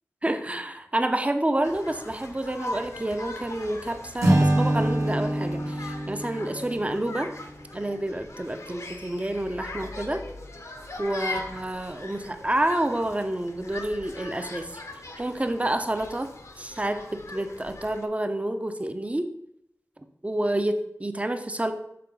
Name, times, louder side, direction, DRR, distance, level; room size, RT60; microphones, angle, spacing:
voice 1, 0.2-7.3 7.7-10.2 11.0-14.7 15.2-19.3 20.2-21.7, right 1 dB, 25° right, 8 dB, 0.6 m, -29 dB
sound 1, 1.6-18.1, left 2 dB, 60° left, 0.9 m, -40 dB
Acoustic guitar / Strum, 4.2-7.5, right 1 dB, 70° right, 1.3 m, -25 dB
6.8 x 3.6 x 5.3 m, 0.80 s
wide cardioid pair, 75°, 6 cm